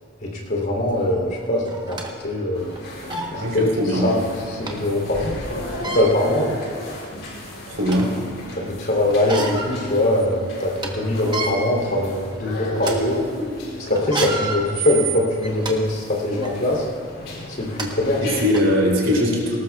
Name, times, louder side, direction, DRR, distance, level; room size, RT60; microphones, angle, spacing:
voice 1, 0.2-2.7 3.3-3.7 4.0-4.2 4.5-5.6 5.9-6.5 8.5-13.2 13.8-16.9 17.5-18.7, left 1 dB, 45° left, -2 dB, 3.2 m, -22 dB
sound 1, 0.9-1.0 1.7-2.1 2.7-2.8 3.1-3.3 4.7-4.8 5.7-6.1 6.9-7.0 7.4-8.1 9.1-9.7 10.1-10.2 10.6-10.9 11.2-11.5 12.2-12.4 12.8-12.9 14.0-15.7 16.4-16.5 17.4-17.5 17.8-17.9 18.5-18.6, right 3 dB, 20° right, 1.1 m, -28 dB
sound 2, 2.5-18.4, left 1 dB, 65° left, 3.4 m, -35 dB
voice 2, 3.4-4.1 7.7-8.1 18.2-19.6, equal, 60° right, -3 dB, 3.3 m, -20 dB
19.5 x 18.5 x 2.4 m, 2.1 s
head